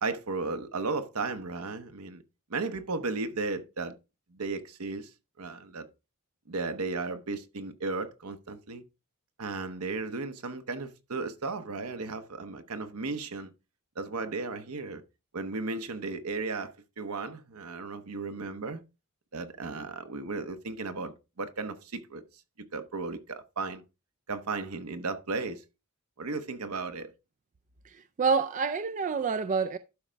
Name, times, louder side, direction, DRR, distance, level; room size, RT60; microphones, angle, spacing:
voice 1, 0.0-2.2 2.5-4.0 4.3-5.1 5.4-5.9 6.5-8.8 9.4-13.5 14.0-15.0 15.3-18.8 19.3-22.2 22.7-23.8 24.3-25.6 26.2-27.1, right 3 dB, 75° right, 1.0 m, -35 dB
voice 2, 27.8-29.8, right 5 dB, 35° right, 0.3 m, -28 dB
11.5 x 5.1 x 3.4 m
head